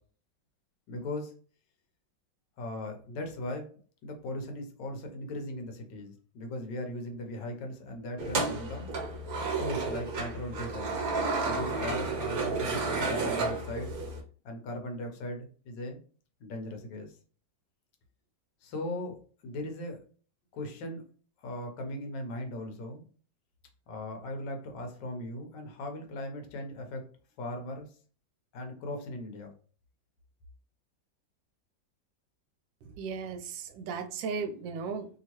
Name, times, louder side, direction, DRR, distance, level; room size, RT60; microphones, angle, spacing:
voice 1, 0.9-1.3 2.6-3.7 4.0-8.9 9.5-11.0 11.4-14.0 14.4-16.0 16.4-17.2 18.6-19.2 19.4-20.0 20.5-21.0 21.4-23.0 23.9-27.0 27.4-28.0 28.5-29.5, left 1 dB, 75° left, 4 dB, 1.4 m, -38 dB
sound 1, 8.2-14.2, right 3 dB, 55° right, 1.3 m, -32 dB
voice 2, 33.0-35.1, right 5 dB, 85° right, 8 dB, 1.3 m, -36 dB
3.2 x 2.8 x 2.9 m, 0.41 s
omnidirectional pair, 2.0 m